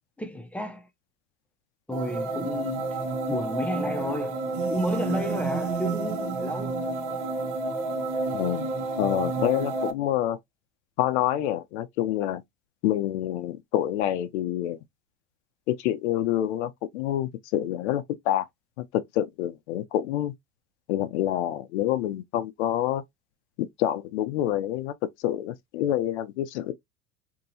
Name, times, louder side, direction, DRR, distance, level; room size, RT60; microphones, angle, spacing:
voice 1, 0.2-0.9 1.9-3.0 3.3-6.8, equal, 5° left, 0.6 m, -32 dB
sound 1, 1.9-9.9, right 3 dB, 65° right, 0.8 m, -30 dB
voice 2, 8.3-10.4 11.0-12.4 12.8-14.8 15.7-18.5 18.8-20.3 20.9-23.0 23.6-26.7, left 12 dB, 85° left, 0.6 m, -27 dB
2.9 x 2.7 x 2.7 m
supercardioid pair, 100°, 33 cm